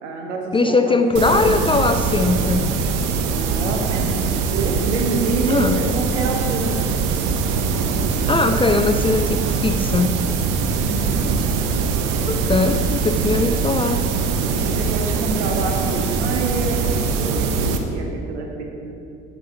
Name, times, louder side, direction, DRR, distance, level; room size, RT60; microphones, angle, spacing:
voice 1, 0.0-1.4 3.3-6.7 10.8-11.3 14.6-18.9, right 3 dB, 75° right, 1 dB, 1.2 m, -27 dB
voice 2, 0.5-2.7 5.5-5.8 8.3-10.2 12.3-14.1, left 3 dB, 15° left, 8 dB, 0.4 m, -20 dB
sound 1, 1.1-17.8, right 5 dB, 60° right, 0.8 m, -22 dB
10.5 x 5.8 x 4.3 m, 2.5 s
figure-of-eight pair, 50°, 35 cm